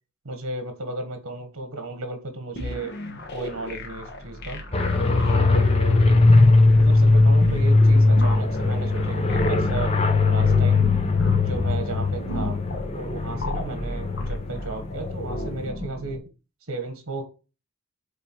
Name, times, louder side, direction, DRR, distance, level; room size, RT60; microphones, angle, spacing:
voice 1, 0.2-3.0 3.3-4.6 5.3-6.0 6.7-9.9 10.3-10.9 11.4-12.6 13.0-16.2 16.7-17.2, right 3 dB, 65° right, 7 dB, 1.4 m, -34 dB
sound 1, 2.6-16.2, left 1 dB, 50° left, 1.3 m, -33 dB
sound 2, 4.7-15.7, left 3 dB, 30° left, 0.8 m, -20 dB
8.1 x 3.7 x 4.6 m, 0.33 s
head